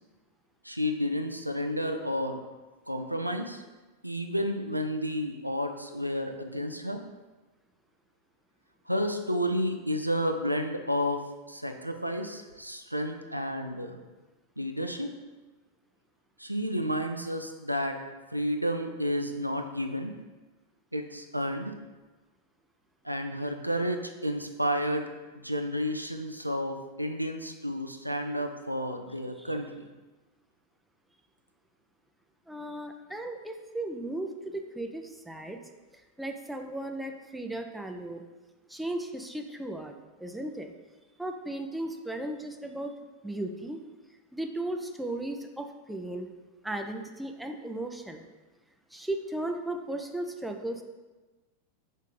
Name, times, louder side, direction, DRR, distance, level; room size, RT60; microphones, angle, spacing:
voice 1, 0.6-2.4 2.9-3.6 4.0-7.0 8.9-11.2 11.5-14.0 14.6-15.1 16.4-18.0 18.3-20.1 20.9-21.7 23.0-25.1 25.4-29.8, equal, 90° right, 5 dB, 0.3 m, -31 dB
voice 2, 32.5-35.6 36.2-38.2 38.7-39.9 40.2-40.7 41.2-42.9 43.2-43.8 44.3-46.3 46.6-48.2 48.9-50.8, right 1 dB, 5° right, 4 dB, 0.4 m, -36 dB
5.1 x 2.7 x 3.8 m, 1.2 s
figure-of-eight pair, 90°, 0 cm